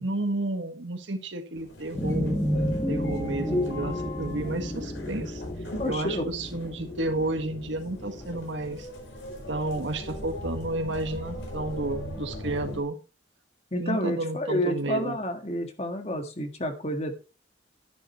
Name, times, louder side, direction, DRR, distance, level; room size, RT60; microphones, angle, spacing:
voice 1, 0.0-2.4 2.9-5.4 5.8-8.9 9.5-13.0 13.8-15.2, right 2 dB, 75° right, 7 dB, 1.7 m, -31 dB
sound 1, 1.6-12.8, equal, 90° left, 4.3 m, -39 dB
sound 2, 1.9-8.5, left 1 dB, 15° left, 2.4 m, -31 dB
voice 2, 5.8-6.3 13.7-17.1, equal, 35° left, 5 dB, 1.8 m, -29 dB
10.5 x 10.5 x 3.1 m, 0.32 s
head